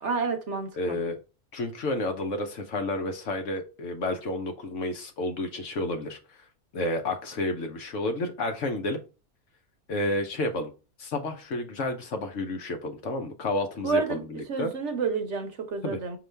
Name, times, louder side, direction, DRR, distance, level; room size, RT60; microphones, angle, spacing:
voice 1, 0.0-1.0 13.8-16.2, right 5 dB, 55° right, 1.0 m, -30 dB
voice 2, 0.8-1.2 1.5-6.4 6.7-9.0 9.9-10.7 11.0-14.7 15.8-16.0, left 2 dB, 60° left, 1.1 m, -30 dB
5.3 x 3.0 x 3.3 m
omnidirectional pair, 1.5 m